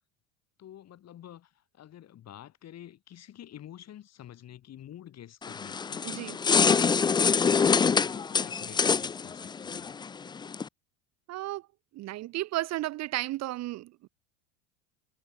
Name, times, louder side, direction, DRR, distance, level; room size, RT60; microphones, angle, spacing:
voice 1, 0.6-6.2 6.5-9.9, left 11 dB, 40° left, 4.7 m, -49 dB
sound 1, 5.4-10.7, left 5 dB, 10° left, 0.4 m, -25 dB
voice 2, 6.0-6.4 11.3-11.7 11.9-14.1, right 16 dB, 45° right, 0.7 m, -33 dB
supercardioid pair, 100°, 38 cm